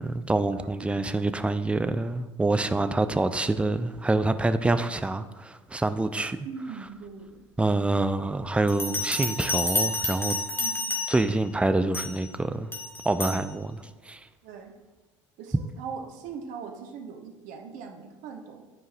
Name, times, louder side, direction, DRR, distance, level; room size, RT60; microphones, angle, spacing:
voice 1, 0.0-6.4 7.6-10.4 11.1-12.7 13.0-14.3, right 2 dB, 5° right, 0.4 m, -26 dB
voice 2, 6.4-7.5 10.6-10.9 14.4-14.7 15.4-18.7, right 6 dB, 55° right, 0.9 m, -40 dB
Bell, 8.7-11.4 11.9-12.2 12.7-13.4, left 2 dB, 15° left, 1.2 m, -30 dB
11.0 x 4.7 x 2.6 m
figure-of-eight pair, 65°, 16 cm